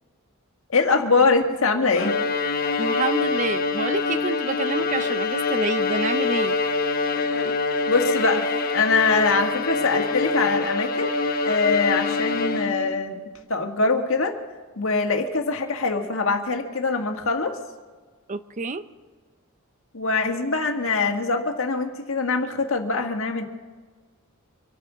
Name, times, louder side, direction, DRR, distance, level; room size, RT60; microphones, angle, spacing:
voice 1, 0.7-2.2 7.9-11.1 11.5-13.2 13.5-14.4 14.8-17.6 19.9-23.5, left 4 dB, 65° left, 4 dB, 1.7 m, -23 dB
Bowed string instrument, 1.9-13.0, left 4 dB, 45° left, 1.1 m, -25 dB
voice 2, 2.8-6.6 18.3-18.8, right 3 dB, 35° right, 12 dB, 0.5 m, -28 dB
25.0 x 9.3 x 6.1 m, 1.4 s
head